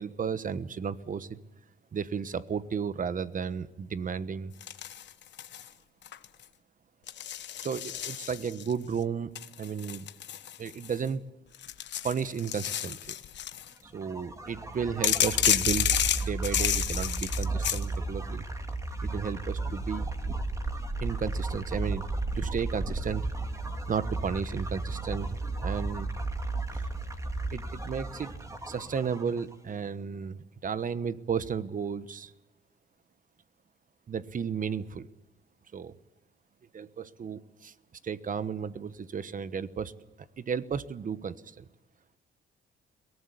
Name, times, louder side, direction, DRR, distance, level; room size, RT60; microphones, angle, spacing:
voice 1, 0.0-1.4 1.9-4.5 7.6-9.3 9.6-10.1 10.6-11.2 12.0-13.2 13.8-15.9 16.2-18.5 19.0-20.1 21.0-22.0 22.3-23.3 23.9-26.1 26.7-26.9 27.5-28.3 28.6-32.3 34.1-35.1 35.7-36.0 36.7-37.7 38.0-39.9 40.4-41.7, right 6 dB, 40° right, 15 dB, 1.2 m, -33 dB
sound 1, 4.6-5.7 6.0-6.4 7.1-8.7 9.3-11.1 11.5-13.7 15.0-17.8, left 11 dB, 65° left, 1.1 m, -30 dB
sound 2, 13.9-29.5, right 2 dB, 15° right, 2.7 m, -34 dB
22.5 x 18.5 x 8.3 m, 1.1 s
cardioid pair, 90°, 20 cm